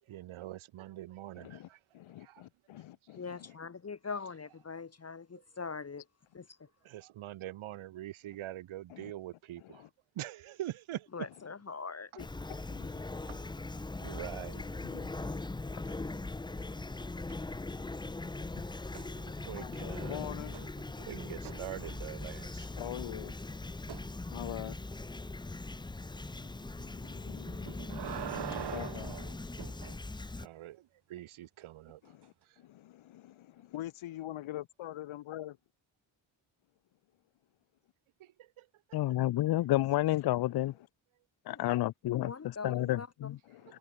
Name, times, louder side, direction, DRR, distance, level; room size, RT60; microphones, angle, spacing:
voice 1, 0.0-1.8 2.2-2.5 2.7-2.8 5.3-5.4 6.8-11.1 12.1-12.2 13.3-13.5 13.7-14.9 15.8-16.0 17.3-17.6 18.6-18.7 19.4-20.3 21.0-22.8 29.6-29.8 30.4-32.2 32.4-32.6 38.2-39.2 41.2-41.3 43.6-43.8, right 14 dB, 85° right, 4.2 m, -45 dB
voice 2, 1.4-1.7 1.9-3.6 8.9-9.1 9.8-9.9 12.2-12.3 12.7-13.3 14.8-19.3 19.6-20.7 22.8-23.9 24.3-24.9 26.0-26.1 26.3-29.2 32.1-35.6 40.5-40.7 43.4-43.8, left 14 dB, 80° left, 1.8 m, -46 dB
voice 3, 3.2-6.0 6.3-6.7 11.1-12.3 41.5-41.7 42.1-43.4, left 5 dB, 30° left, 1.2 m, -42 dB
Fowl / Chirp tweet, 12.2-30.5, left 2 dB, 10° left, 0.6 m, -40 dB
sound 1, 18.9-19.6 19.9-22.3 23.9-24.1 27.5-30.0 32.2-32.3, right 10 dB, 60° right, 1.3 m, -44 dB
voice 4, 38.9-40.7 41.5-42.3 42.6-43.4, left 15 dB, 55° left, 0.5 m, -29 dB
supercardioid pair, 45°, 47 cm